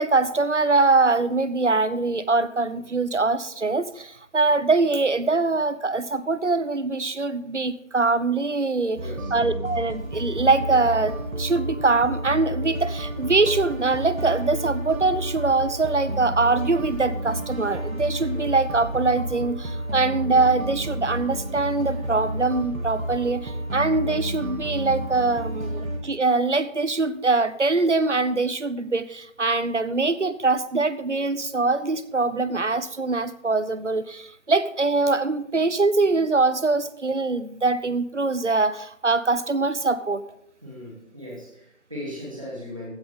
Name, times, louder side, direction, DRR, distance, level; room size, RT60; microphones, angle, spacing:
voice 1, 0.0-9.0 9.3-40.2, right 3 dB, 60° right, 15 dB, 1.0 m, -23 dB
voice 2, 8.9-9.3 40.6-42.9, left 1 dB, 25° right, -5 dB, 2.8 m, -38 dB
sound 1, 9.0-26.0, right 1 dB, 85° right, 2.5 m, -31 dB
15.5 x 10.5 x 3.7 m, 0.71 s
figure-of-eight pair, 180°, 40 cm